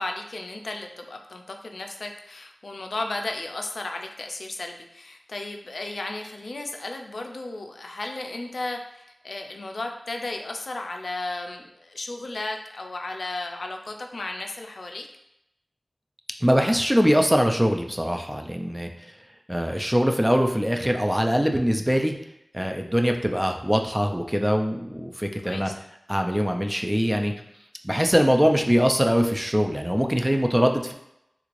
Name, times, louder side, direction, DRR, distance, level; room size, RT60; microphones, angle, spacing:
voice 1, 0.0-15.1 25.4-25.7, left 2 dB, 90° left, 3 dB, 0.3 m, -34 dB
voice 2, 16.4-18.9 19.5-22.1 22.5-25.7 26.1-27.3 27.8-30.9, equal, 10° right, 3 dB, 0.4 m, -22 dB
3.5 x 3.1 x 2.5 m, 0.82 s
wide cardioid pair, 60°, 0 cm